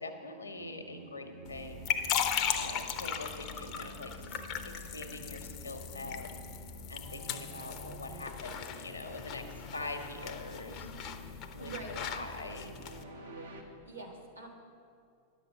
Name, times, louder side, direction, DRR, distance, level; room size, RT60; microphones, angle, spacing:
voice 1, 0.0-4.4 4.7-6.3 6.9-10.9 11.5-12.8, left 2 dB, 80° left, 6 dB, 1.0 m, -44 dB
sound 1, 0.6-13.6, right 1 dB, 70° right, 1.4 m, -50 dB
sound 2, 1.5-13.0, left 8 dB, 40° left, 0.6 m, -38 dB
voice 2, 11.6-12.7 13.8-14.5, right 3 dB, 85° right, -3 dB, 1.7 m, -45 dB
10.5 x 6.7 x 6.6 m, 2.4 s
figure-of-eight pair, 90°, 0 cm